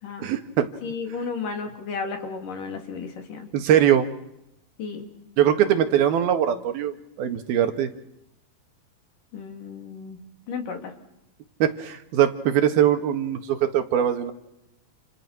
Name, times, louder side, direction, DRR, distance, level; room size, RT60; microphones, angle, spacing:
voice 1, 0.2-0.7 3.5-4.1 5.4-7.9 11.6-14.3, right 10 dB, 85° right, 8 dB, 3.6 m, -21 dB
voice 2, 0.8-3.5 4.8-5.1 9.3-10.2 10.5-10.9, left 5 dB, 60° left, 4 dB, 4.9 m, -33 dB
30.0 x 28.5 x 6.1 m, 0.85 s
omnidirectional pair, 4.3 m